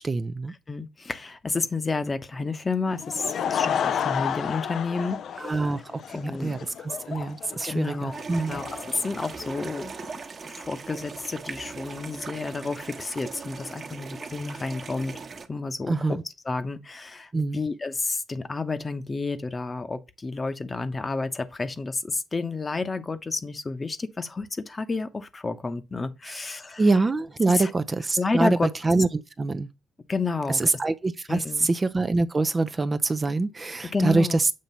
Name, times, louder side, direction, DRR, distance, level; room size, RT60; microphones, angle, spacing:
voice 1, 0.0-0.5 5.4-8.6 15.9-16.2 17.3-17.6 26.3-26.4 26.8-29.7 30.5-34.5, right 3 dB, 25° right, 0.5 m, -25 dB
voice 2, 0.7-5.2 6.1-6.5 7.6-8.7 9.0-9.9 10.4-15.2 15.5-15.9 16.5-26.8 27.5-27.7 28.2-28.7 30.1-30.6 31.3-31.7 33.8-34.4, left 3 dB, 25° left, 0.9 m, -30 dB
Laughter / Crowd, 2.9-9.8, left 8 dB, 65° left, 0.4 m, -31 dB
sound 1, 8.1-15.5, right 5 dB, 40° right, 1.2 m, -39 dB
7.4 x 2.9 x 5.5 m
cardioid pair, 90°, 0 cm